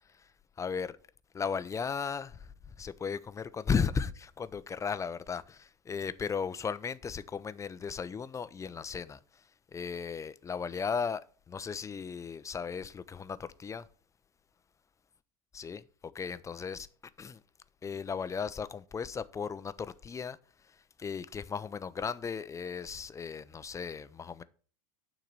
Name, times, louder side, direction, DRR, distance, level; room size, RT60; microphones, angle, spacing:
voice 1, 0.6-0.9 1.3-2.4 2.8-9.2 9.7-11.2 11.5-13.8 15.5-15.8 16.1-16.9 17.2-17.4 17.8-20.4 21.0-24.4, left 6 dB, 15° left, 0.5 m, -35 dB
9.2 x 3.8 x 6.8 m
figure-of-eight pair, 85°, 18 cm